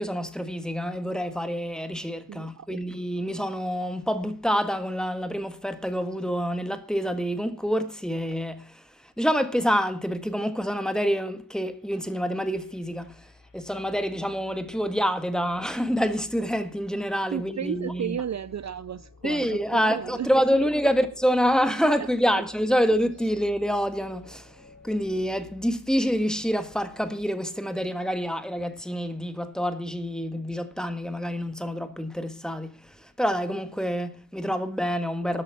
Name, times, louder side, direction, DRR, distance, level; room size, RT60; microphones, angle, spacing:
voice 1, 0.0-18.2 19.2-24.6 24.8-35.4, equal, ahead, 1.6 m, -27 dB
voice 2, 2.3-2.8 17.3-20.7, right 8 dB, 50° right, 0.5 m, -34 dB
sound 1, 11.7-27.2, left 3 dB, 60° left, 3.7 m, -53 dB
13.5 x 8.3 x 5.9 m
wide cardioid pair, 90°, 35 cm